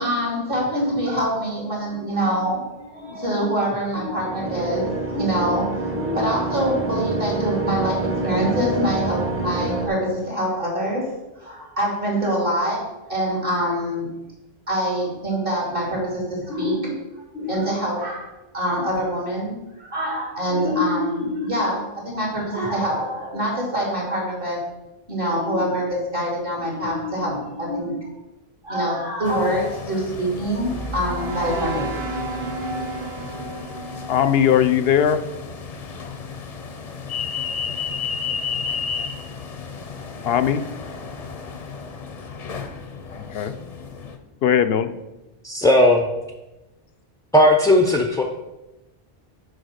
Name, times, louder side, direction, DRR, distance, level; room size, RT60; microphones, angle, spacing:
voice 1, 0.0-14.1 14.7-17.0 17.3-24.6 25.1-28.1 28.6-32.0, equal, 60° right, -2 dB, 2.9 m, -25 dB
sound 1, 4.1-9.9, right 3 dB, 15° right, 0.8 m, -27 dB
sound 2, 29.3-44.2, left 6 dB, 45° left, 0.7 m, -33 dB
sound 3, 30.1-35.3, right 2 dB, 80° right, 1.4 m, -32 dB
voice 2, 34.1-35.2 40.2-40.6 43.2-43.5 44.4-44.9, left 9 dB, 75° left, 11 dB, 0.8 m, -19 dB
voice 3, 45.4-46.0 47.3-48.2, left 1 dB, 5° left, 2 dB, 0.4 m, -16 dB
6.4 x 4.8 x 6.4 m, 0.99 s
omnidirectional pair, 1.0 m